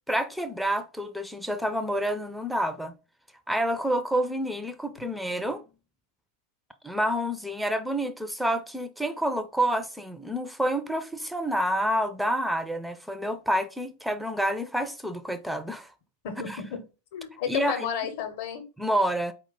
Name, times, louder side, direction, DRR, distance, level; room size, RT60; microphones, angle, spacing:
voice 1, 0.1-2.9 3.5-5.6 6.8-15.9 16.5-16.6 17.5-17.9 18.8-19.3, equal, ahead, 0.4 m, -28 dB
voice 2, 16.2-16.8 17.1-18.6, left 7 dB, 50° left, 0.7 m, -32 dB
4.5 x 2.2 x 3.8 m
figure-of-eight pair, 90°, 0 cm